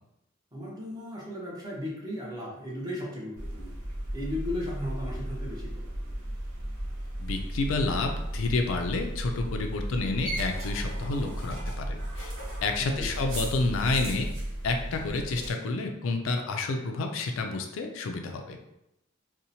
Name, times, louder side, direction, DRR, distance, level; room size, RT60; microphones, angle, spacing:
voice 1, 0.5-3.7 4.1-6.1 12.8-13.2, left 1 dB, 20° right, -5 dB, 0.6 m, -36 dB
sound 1, 3.4-15.5, right 1 dB, 80° right, 0.9 m, -35 dB
voice 2, 7.2-12.3 12.6-14.3 14.6-18.6, left 3 dB, 70° left, 4 dB, 0.3 m, -29 dB
2.7 x 2.0 x 2.7 m, 0.85 s
head